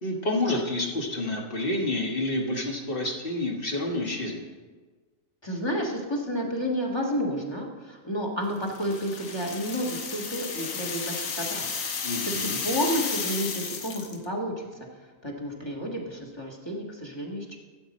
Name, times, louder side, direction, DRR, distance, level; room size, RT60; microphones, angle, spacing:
voice 1, 0.0-4.4 12.0-12.6, left 2 dB, 40° left, 0 dB, 1.6 m, -29 dB
voice 2, 5.4-11.7 12.2-14.6 15.2-17.6, equal, 20° left, -1 dB, 1.6 m, -31 dB
sound 1, 8.7-14.2, left 5 dB, 70° left, 1.4 m, -33 dB
14.0 x 8.0 x 4.3 m, 1.4 s
omnidirectional pair, 1.4 m